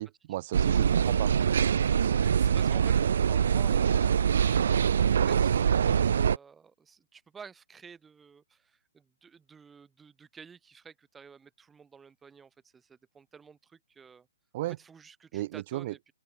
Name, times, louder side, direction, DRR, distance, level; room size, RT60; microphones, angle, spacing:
voice 1, 0.0-1.3 14.5-14.8 15.3-15.9, right 16 dB, 40° right, 2.0 m, -34 dB
sound 1, 0.5-6.4, right 8 dB, 60° right, 0.4 m, -24 dB
voice 2, 2.0-14.3 14.6-16.0, right 6 dB, 10° right, 7.0 m, -52 dB
open air
figure-of-eight pair, 130°, 0 cm